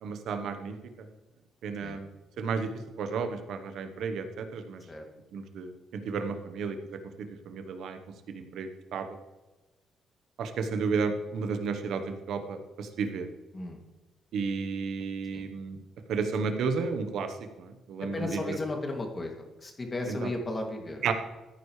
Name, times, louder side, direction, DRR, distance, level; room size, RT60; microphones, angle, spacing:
voice 1, 0.0-1.1 1.6-2.1 2.4-2.7 3.0-4.8 5.3-6.8 7.2-8.0 8.3-9.1 10.4-13.3 14.3-15.8 16.1-18.6 20.1-20.3 21.0-21.1, right 5 dB, 75° right, 8 dB, 1.2 m, -32 dB
voice 2, 18.1-21.0, left 2 dB, 25° left, 2 dB, 2.6 m, -35 dB
14.5 x 9.4 x 3.3 m, 1.1 s
cardioid pair, 90°, 0 cm